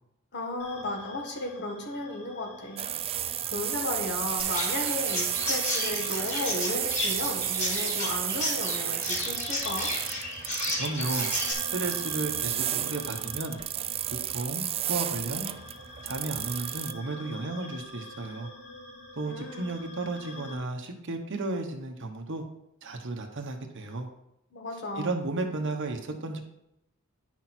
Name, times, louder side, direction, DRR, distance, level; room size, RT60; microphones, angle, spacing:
voice 1, 0.3-2.9 3.2-9.9 19.2-19.7 24.5-25.1, left 2 dB, 55° left, 2 dB, 1.7 m, -34 dB
sound 1, 0.6-20.6, left 2 dB, 85° left, 2.1 m, -47 dB
sound 2, 2.8-16.9, right 11 dB, 25° right, 0.3 m, -32 dB
Chirp tweet, 4.4-11.5, left 1 dB, 35° left, 3.9 m, -33 dB
voice 2, 10.7-11.3 11.7-13.6 14.3-15.5 16.0-18.5 19.1-22.4 22.8-24.1 25.0-26.4, right 2 dB, 60° right, 4 dB, 1.2 m, -33 dB
10.5 x 6.1 x 4.4 m, 0.83 s
head